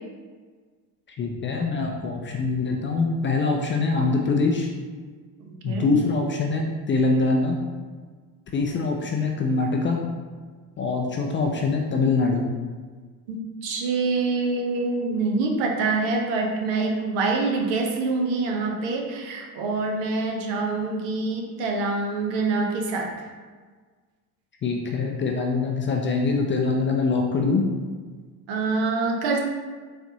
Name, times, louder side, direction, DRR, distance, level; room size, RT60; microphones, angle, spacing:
voice 1, 1.2-4.7 5.6-7.6 8.5-10.0 10.8-12.5 24.6-27.6, left 3 dB, 25° left, 1 dB, 0.4 m, -24 dB
voice 2, 13.3-23.1 28.5-29.4, right 3 dB, 65° right, 1 dB, 0.8 m, -25 dB
4.1 x 2.5 x 2.7 m, 1.5 s
hypercardioid pair, 65°, 47 cm